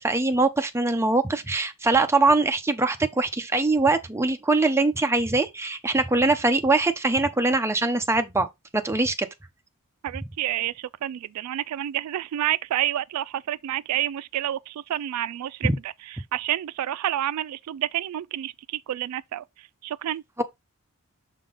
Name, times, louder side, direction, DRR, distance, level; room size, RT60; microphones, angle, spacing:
voice 1, 0.0-8.5 8.7-9.3 15.6-15.8 20.4-20.5, right 3 dB, 10° right, 0.6 m, -22 dB
voice 2, 10.0-15.7 16.3-19.4 19.8-20.2, right 12 dB, 80° right, 0.3 m, -29 dB
6.6 x 3.6 x 3.9 m
head